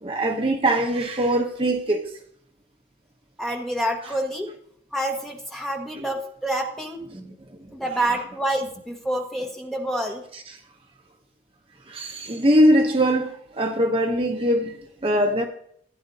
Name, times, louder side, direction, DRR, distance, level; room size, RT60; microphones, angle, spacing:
voice 1, 0.0-2.1 6.0-6.1 7.1-7.3 10.3-10.6 11.9-15.5, equal, 30° right, 0.8 m, -22 dB
voice 2, 3.4-4.5 4.9-7.0 7.7-10.2, right 1 dB, ahead, 1.4 m, -27 dB
16.0 x 9.2 x 2.8 m
head